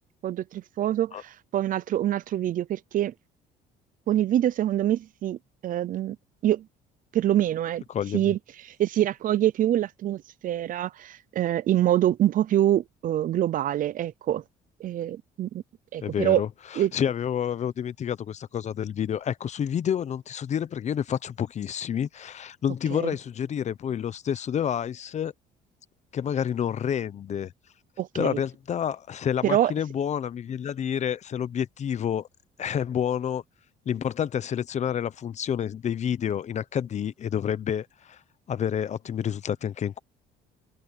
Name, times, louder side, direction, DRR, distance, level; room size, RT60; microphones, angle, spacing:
voice 1, 0.2-3.1 4.1-5.4 5.6-6.2 6.4-6.6 7.1-7.8 8.1-8.4 8.7-14.4 14.8-15.6 15.9-16.4 16.7-16.9 22.9-23.1 28.0-28.4 29.4-29.7, right 12 dB, 55° right, 0.6 m, -25 dB
voice 2, 7.9-8.3 16.0-25.3 26.1-27.5 28.1-32.3 32.6-33.4 33.9-38.2 38.5-40.0, left 9 dB, 45° left, 0.8 m, -29 dB
cardioid pair, 110°, 17 cm